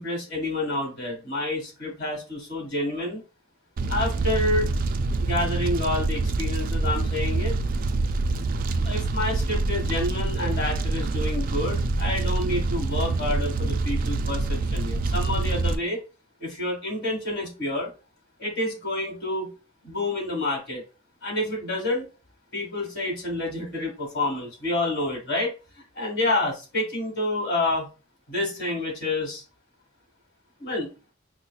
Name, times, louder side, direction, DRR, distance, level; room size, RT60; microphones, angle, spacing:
voice 1, 0.0-3.2 3.9-4.7 5.2-7.6 8.8-16.0 16.4-17.9 18.4-19.5 19.8-20.8 21.2-22.1 22.5-25.5 26.0-27.9 28.3-29.4 30.6-30.9, left 2 dB, 55° left, 1 dB, 1.7 m, -28 dB
Fire, 3.8-15.8, right 3 dB, 45° right, 0.3 m, -26 dB
5.5 x 2.1 x 2.3 m, 0.31 s
head